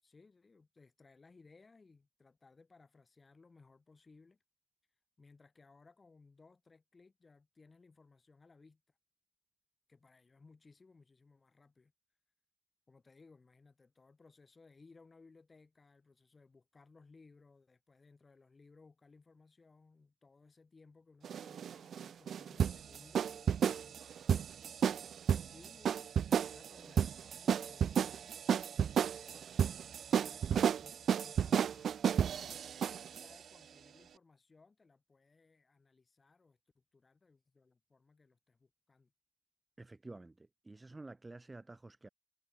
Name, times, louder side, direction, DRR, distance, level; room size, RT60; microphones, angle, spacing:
voice 1, 0.0-4.4 5.2-8.8 9.9-11.9 12.9-24.4 25.5-29.8 30.0-32.1 32.7-39.1, left 4 dB, 25° left, 5.9 m, -63 dB
sound 1, 21.2-33.3, right 8 dB, 55° right, 0.5 m, -32 dB
voice 2, 39.8-42.1, right 2 dB, 15° right, 2.1 m, -51 dB
cardioid pair, 90°, 0 cm